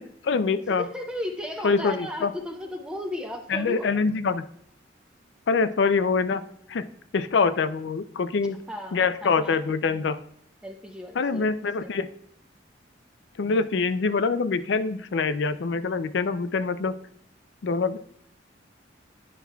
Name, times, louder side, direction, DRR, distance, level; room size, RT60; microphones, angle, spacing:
voice 1, 0.0-0.8 1.6-2.3 3.5-4.4 5.5-6.4 6.7-6.9 7.1-8.6 8.9-10.2 11.2-12.1 13.4-17.0 17.6-18.0, left 4 dB, 65° left, 13 dB, 0.4 m, -25 dB
voice 2, 0.7-4.0 8.7-9.6 9.8-10.0 10.6-12.0, left 1 dB, 5° right, 2 dB, 0.6 m, -35 dB
10.0 x 5.9 x 2.3 m, 0.69 s
head